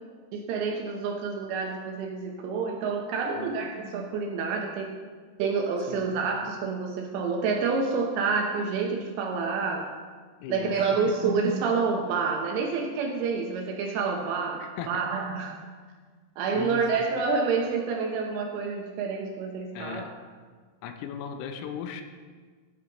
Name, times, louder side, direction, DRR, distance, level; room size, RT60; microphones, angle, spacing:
voice 1, 0.3-4.9 5.4-9.9 10.5-15.5 16.4-20.0, right 5 dB, 80° right, 1 dB, 2.6 m, -28 dB
voice 2, 10.4-11.1 14.6-15.2 16.5-17.0 19.7-20.2 20.8-22.0, left 7 dB, 85° left, 6 dB, 3.3 m, -38 dB
13.5 x 7.9 x 2.9 m, 1.5 s
omnidirectional pair, 5.9 m